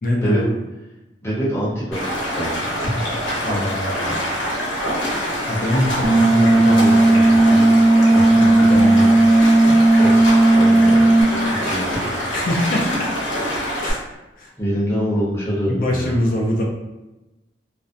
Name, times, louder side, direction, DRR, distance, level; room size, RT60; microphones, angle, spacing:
voice 1, 0.0-0.5 3.4-4.4 5.5-7.6 8.1-9.6 12.3-13.1 13.8-14.0 14.4-14.5 15.7-16.6, left 1 dB, 45° left, -1 dB, 0.4 m, -24 dB
voice 2, 1.2-2.5 10.0-12.1 14.6-16.2, equal, 15° left, -8 dB, 0.7 m, -25 dB
Stream, 1.9-13.9, equal, 90° left, 0.8 m, -25 dB
sound 1, 6.0-11.2, right 2 dB, 40° right, 0.5 m, -13 dB
2.5 x 2.1 x 2.5 m, 1.0 s
head